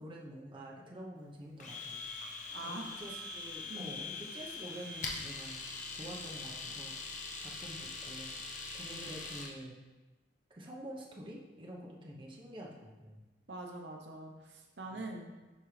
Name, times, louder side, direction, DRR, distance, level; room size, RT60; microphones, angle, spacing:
voice 1, 0.0-2.1 2.6-7.0 7.4-8.4 8.7-9.8 10.5-13.2 14.8-15.1, equal, 25° right, -3 dB, 0.9 m, -48 dB
Domestic sounds home sounds, 1.6-9.5, left 3 dB, 40° left, 0.8 m, -42 dB
voice 2, 2.5-2.8 3.7-4.0 13.5-15.3, right 2 dB, 70° right, 2 dB, 0.7 m, -44 dB
10.5 x 3.6 x 3.2 m, 1.2 s
head